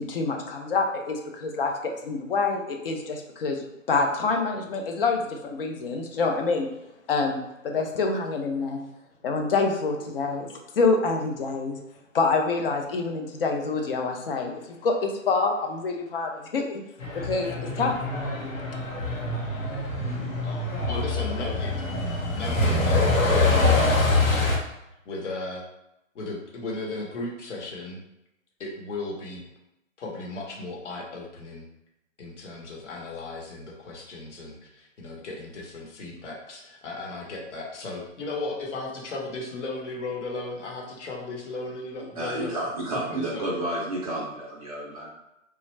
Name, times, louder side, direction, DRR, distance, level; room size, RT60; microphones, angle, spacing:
voice 1, 0.0-1.7 2.0-3.6 3.9-6.7 7.1-7.4 7.6-8.8 9.2-10.5 10.8-11.8 12.1-16.8 17.1-17.5 17.8-17.9, left 4 dB, 45° left, 3 dB, 0.6 m, -26 dB
Truck, 17.0-24.6, left 2 dB, 85° left, 1.0 m, -24 dB
voice 2, 20.4-21.7 22.0-24.7 25.0-25.6 26.1-28.0 28.6-29.4 30.0-31.7 32.2-43.5, left 2 dB, 60° left, -2 dB, 1.1 m, -36 dB
voice 3, 42.2-45.1, right 1 dB, 30° right, -5 dB, 0.5 m, -31 dB
3.1 x 2.3 x 3.2 m, 0.88 s
hypercardioid pair, 135°, 40 cm